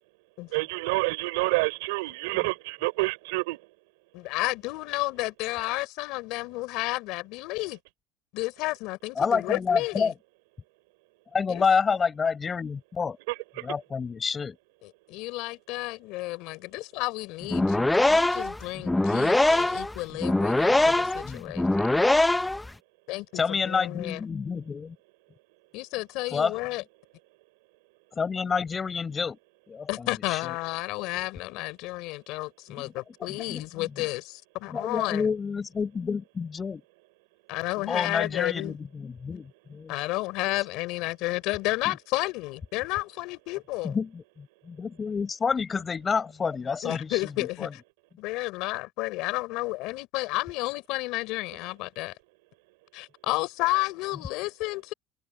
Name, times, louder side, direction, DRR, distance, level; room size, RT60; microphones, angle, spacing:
voice 1, 0.5-3.6 13.3-13.7, right 25 dB, 85° right, 5.4 m, -28 dB
voice 2, 4.1-7.8 8.3-10.1 11.5-11.6 14.8-22.0 23.1-24.2 25.7-26.8 29.9-35.3 37.5-38.8 39.9-44.0 46.8-47.8 48.2-52.1 52.9-54.9, left 21 dB, 70° left, 4.0 m, -32 dB
voice 3, 9.2-10.1 11.3-13.2 13.6-14.6 20.6-20.7 21.2-21.5 23.3-24.9 26.3-26.5 28.2-29.4 29.7-30.4 32.8-32.9 33.3-33.9 34.7-36.8 37.9-39.9 43.8-47.2 47.6-47.7, left 5 dB, 25° left, 5.3 m, -28 dB
sound 1, 17.4-22.7, left 2 dB, 10° left, 0.6 m, -23 dB
supercardioid pair, 105°, 0 cm